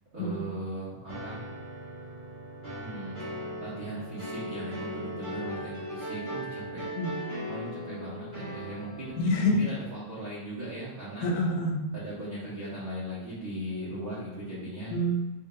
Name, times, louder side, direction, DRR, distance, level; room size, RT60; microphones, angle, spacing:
voice 1, 0.1-1.4 2.8-3.2 3.6-6.8 7.4-9.1 9.4-11.3 11.9-15.0, right 1 dB, 75° right, -8 dB, 0.8 m, -38 dB
sound 1, 1.1-9.4, equal, 30° right, 0.9 m, -38 dB
voice 2, 9.2-9.7 11.2-11.8 14.9-15.1, left 1 dB, 80° left, -1 dB, 2.0 m, -27 dB
6.1 x 2.8 x 2.4 m, 1.2 s
omnidirectional pair, 3.4 m